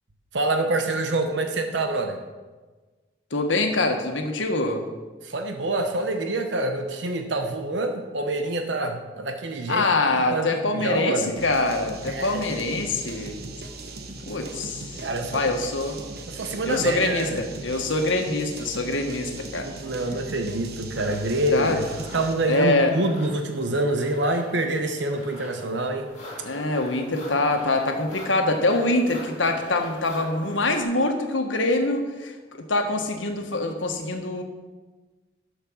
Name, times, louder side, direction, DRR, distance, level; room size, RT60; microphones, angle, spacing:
voice 1, 0.3-2.2 5.2-9.9 10.3-11.3 12.1-12.5 15.0-15.6 16.3-17.4 19.6-21.9 22.1-26.1, right 2 dB, 75° right, 5 dB, 0.9 m, -26 dB
voice 2, 3.3-4.8 9.7-13.4 14.3-15.1 15.3-16.0 16.6-19.7 21.5-21.8 22.5-22.9 26.4-34.4, left 2 dB, 90° left, 4 dB, 1.5 m, -24 dB
sound 1, 11.4-22.5, right 2 dB, 55° right, 1.1 m, -39 dB
sound 2, 20.9-30.8, left 2 dB, 35° left, 2.5 m, -43 dB
12.0 x 6.5 x 6.3 m, 1.3 s
head